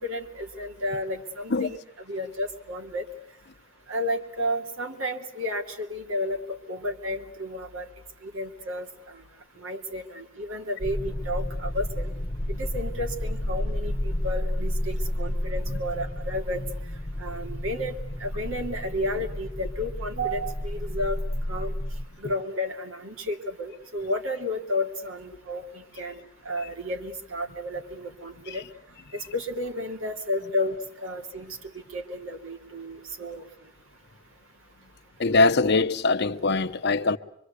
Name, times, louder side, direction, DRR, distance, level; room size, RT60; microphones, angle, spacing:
voice 1, 0.0-1.8 2.1-3.1 3.9-7.9 8.2-8.9 9.6-12.1 12.5-16.7 17.2-17.9 18.2-21.2 21.5-21.7 22.2-26.2 26.4-28.7 29.1-31.6 31.9-33.4, left 1 dB, 80° right, 2.8 m, -32 dB
sound 1, 10.8-22.1, left 1 dB, 30° left, 1.0 m, -31 dB
voice 2, 35.2-37.2, left 3 dB, 55° left, 1.0 m, -22 dB
25.0 x 24.0 x 8.2 m
head